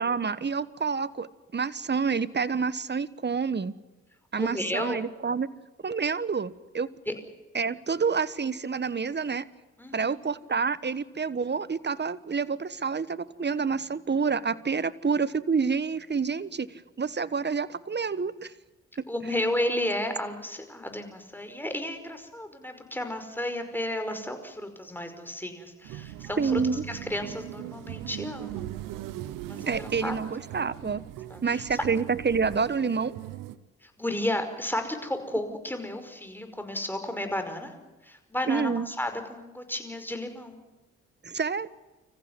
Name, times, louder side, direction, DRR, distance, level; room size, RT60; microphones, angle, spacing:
voice 1, 0.0-3.7 4.3-5.5 5.8-6.9 7.5-9.4 9.9-18.5 26.4-26.8 29.7-31.0 31.4-33.1 38.5-38.9 41.2-41.7, right 5 dB, 35° right, 17 dB, 1.2 m, -28 dB
voice 2, 4.4-5.0 7.1-7.2 9.8-10.2 19.1-26.6 26.9-28.7 29.5-30.1 31.3-31.6 33.8-37.8 38.0-40.6, left 1 dB, 5° left, 6 dB, 5.2 m, -33 dB
sound 1, 25.8-33.6, right 14 dB, 90° right, 0.9 m, -39 dB
27.0 x 15.0 x 9.7 m, 1.1 s
supercardioid pair, 45°, 31 cm